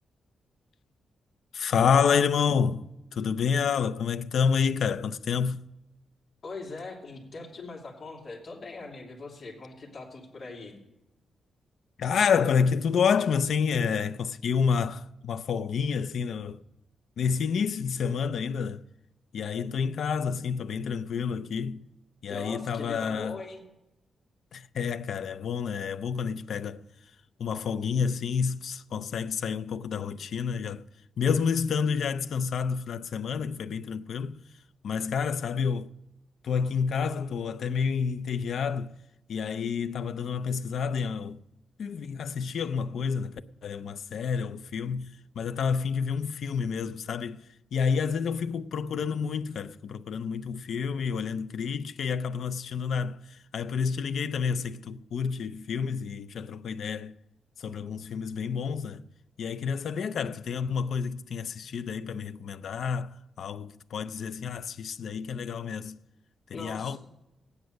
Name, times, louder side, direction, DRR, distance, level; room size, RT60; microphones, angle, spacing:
voice 1, 1.5-2.9 3.2-5.6 12.0-16.6 17.2-18.8 19.3-21.8 22.2-23.4 24.5-26.8 27.4-30.8 31.2-34.4 34.8-35.9 36.4-38.9 39.3-41.4 41.8-43.3 43.6-45.1 45.4-47.4 47.7-53.2 53.5-57.1 57.6-59.0 59.4-63.1 63.4-66.0 66.5-67.0, left 6 dB, 60° left, 0.5 m, -29 dB
voice 2, 6.4-10.8 22.3-23.6 66.5-67.0, left 3 dB, 40° left, 2.8 m, -41 dB
16.0 x 9.6 x 6.4 m
wide cardioid pair, 170°, 0 cm